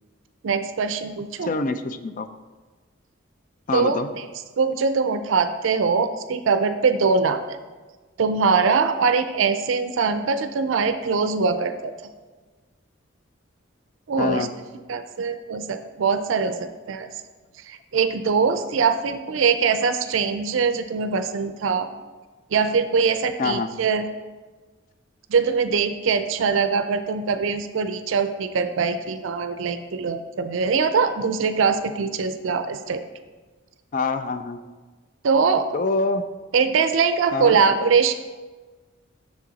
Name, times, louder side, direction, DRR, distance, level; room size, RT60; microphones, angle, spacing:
voice 1, 0.4-1.5 3.7-4.3 4.6-7.6 8.2-11.9 14.1-14.5 14.9-17.1 17.7-21.9 22.5-24.0 25.3-33.0 35.2-35.7 36.5-38.1, right 5 dB, 75° right, 9 dB, 0.4 m, -22 dB
voice 2, 1.4-2.3 3.7-4.1 14.2-14.5 23.4-23.7 33.9-34.6 35.7-36.3 37.3-37.9, left 3 dB, 40° left, 11 dB, 0.4 m, -25 dB
7.5 x 6.5 x 4.0 m, 1.3 s
head